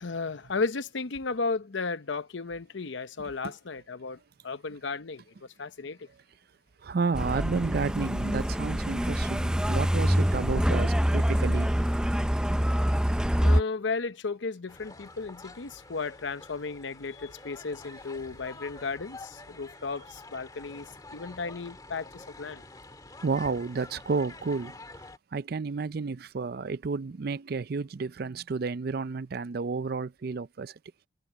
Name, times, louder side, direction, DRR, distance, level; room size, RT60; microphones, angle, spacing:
voice 1, 0.0-4.2 4.4-6.1 13.4-22.6, left 4 dB, 75° left, 0.8 m, -34 dB
voice 2, 6.8-11.7 23.2-24.7 25.3-30.7, right 4 dB, 50° right, 0.5 m, -31 dB
Truck, 7.1-13.6, equal, 5° right, 0.6 m, -25 dB
sound 1, 14.7-25.2, left 2 dB, 20° left, 1.9 m, -48 dB
head